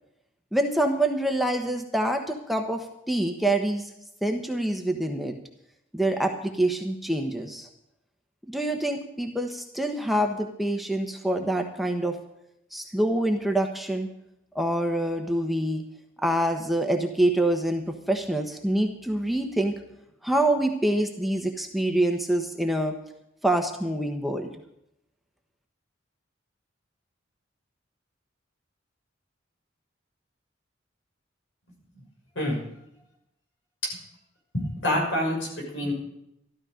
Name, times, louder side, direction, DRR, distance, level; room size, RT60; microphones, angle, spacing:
voice 1, 0.5-3.9 4.2-5.3 5.9-7.7 8.5-12.2 12.7-14.1 14.5-15.8 16.2-19.7 20.2-22.9 23.4-24.5, right 1 dB, ahead, 3 dB, 1.1 m, -26 dB
voice 2, 34.5-35.9, left 1 dB, 75° left, 0 dB, 6.2 m, -27 dB
13.5 x 13.0 x 5.2 m, 0.80 s
head